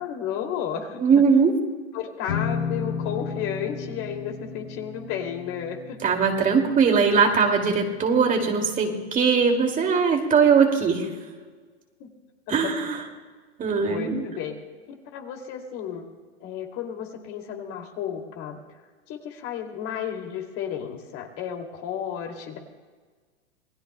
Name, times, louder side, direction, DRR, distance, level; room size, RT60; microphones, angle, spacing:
voice 1, 0.0-1.2 1.9-6.2 12.0-12.1 12.5-12.7 13.9-14.5 15.1-16.0 16.4-18.6 19.1-22.6, left 8 dB, 40° left, 3 dB, 2.6 m, -33 dB
voice 2, 1.0-1.5 6.0-11.1 12.5-13.0 13.6-14.2, right 5 dB, 25° right, 3 dB, 2.3 m, -20 dB
sound 1, 2.3-7.9, left 5 dB, 70° left, 1.4 m, -34 dB
27.5 x 20.0 x 2.2 m, 1.5 s
hypercardioid pair, 110°, 33 cm